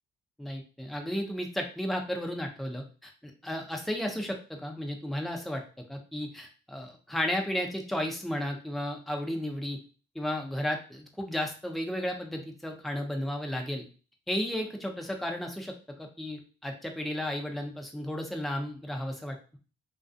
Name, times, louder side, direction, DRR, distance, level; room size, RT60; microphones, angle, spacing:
voice 1, 0.4-5.6 5.9-9.8 10.1-13.9 14.3-15.7 16.0-19.4, equal, ahead, 2 dB, 0.5 m, -33 dB
2.4 x 2.3 x 2.5 m, 0.35 s
cardioid pair, 90°, 20 cm